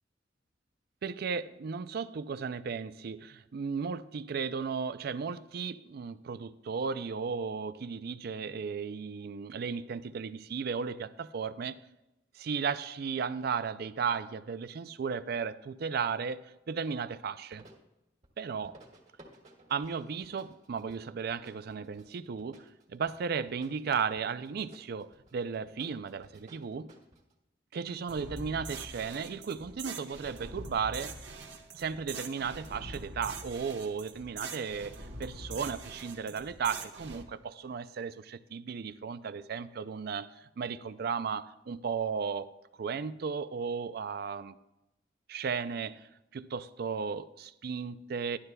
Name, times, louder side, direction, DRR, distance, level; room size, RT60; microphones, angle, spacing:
voice 1, 1.0-11.8 12.4-16.4 16.7-17.6 18.4-18.7 19.7-26.9 27.7-31.2 31.7-42.5 42.8-44.6 45.3-46.1 46.3-48.4, right 6 dB, 60° right, 14 dB, 0.4 m, -35 dB
sound 1, 17.5-17.8 18.2-18.3 18.6-27.3, right 1 dB, 40° right, 1.6 m, -58 dB
sound 2, 28.1-37.2, right 3 dB, 75° right, 1.1 m, -44 dB
12.0 x 11.5 x 2.2 m, 0.93 s
head